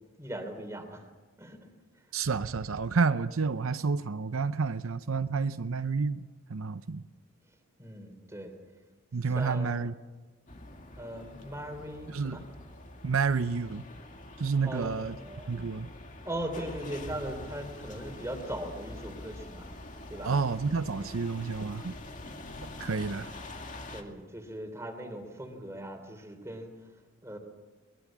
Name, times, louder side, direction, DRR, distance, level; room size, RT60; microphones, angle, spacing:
voice 1, 0.2-1.1 1.4-1.6 7.8-8.5 9.3-9.9 11.0-12.4 14.6-15.5 16.2-19.6 20.1-20.3 22.4-22.5 23.8-26.7 27.2-27.4, right 1 dB, 15° right, 3.3 m, -39 dB
voice 2, 2.1-7.0 9.1-9.9 12.1-12.4 13.0-13.8 14.4-15.2 15.5-15.9 20.2-22.0 22.8-23.3, right 4 dB, 80° right, 0.7 m, -30 dB
sound 1, 10.5-24.0, left 1 dB, 35° left, 2.2 m, -45 dB
22.5 x 21.5 x 7.4 m
head